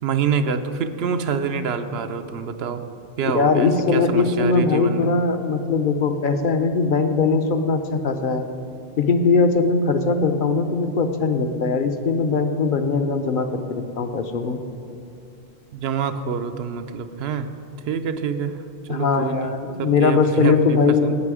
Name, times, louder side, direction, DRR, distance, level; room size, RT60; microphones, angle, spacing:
voice 1, 0.0-2.8 3.2-5.1 15.7-17.5 17.9-21.2, right 6 dB, 85° right, 9 dB, 0.9 m, -26 dB
voice 2, 3.3-8.5 9.0-14.6 18.9-21.1, left 4 dB, 60° left, 7 dB, 0.8 m, -20 dB
17.0 x 5.7 x 4.8 m, 2.6 s
omnidirectional pair, 1.0 m